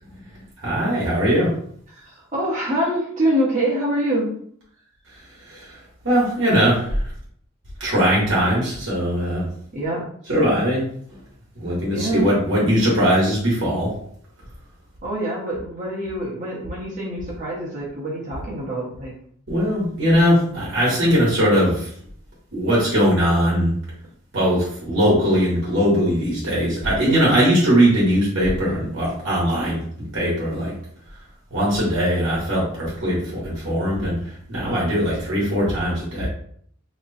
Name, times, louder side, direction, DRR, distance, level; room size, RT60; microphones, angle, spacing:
voice 1, 0.3-1.5 5.1-5.2 5.4-7.0 7.8-9.5 10.3-11.2 11.5-13.9 19.5-21.9 22.5-23.7 24.3-29.8 30.1-30.7 31.5-36.3, equal, 60° right, -6 dB, 1.3 m, -20 dB
voice 2, 1.9-4.3 9.7-10.0 11.9-12.3 15.0-19.1 27.0-27.5, right 1 dB, 35° right, -5 dB, 1.1 m, -25 dB
3.0 x 2.2 x 4.1 m, 0.63 s
head